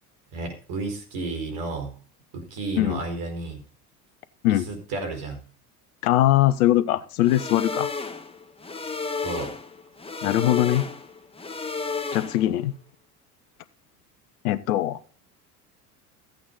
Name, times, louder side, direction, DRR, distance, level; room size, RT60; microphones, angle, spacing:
voice 1, 0.3-1.9 2.3-3.6 4.7-5.4 9.2-9.5, right 3 dB, 55° right, 4 dB, 4.7 m, -32 dB
voice 2, 6.0-7.9 10.2-10.9 12.1-12.7 14.4-15.0, left 14 dB, 65° left, 14 dB, 1.1 m, -21 dB
sound 1, 7.2-12.6, left 4 dB, 10° left, 1.4 m, -32 dB
14.5 x 8.7 x 4.0 m, 0.41 s
hypercardioid pair, 70°, 46 cm